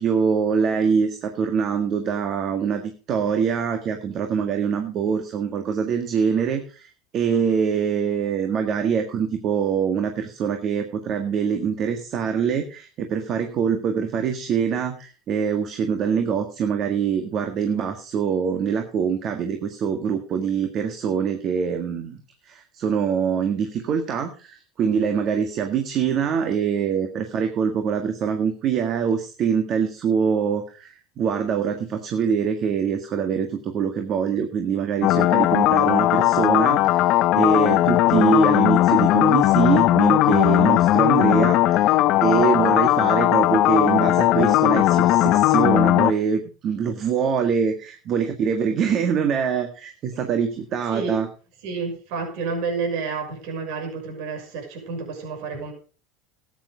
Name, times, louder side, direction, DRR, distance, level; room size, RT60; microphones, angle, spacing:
voice 1, 0.0-42.0 42.2-51.3, right 7 dB, 45° right, 1.7 m, -24 dB
sound 1, 35.0-46.1, left 15 dB, 55° left, 0.7 m, -18 dB
voice 2, 51.6-55.7, right 5 dB, 65° right, 6.0 m, -30 dB
13.5 x 9.3 x 5.1 m
hypercardioid pair, 95°, 0 cm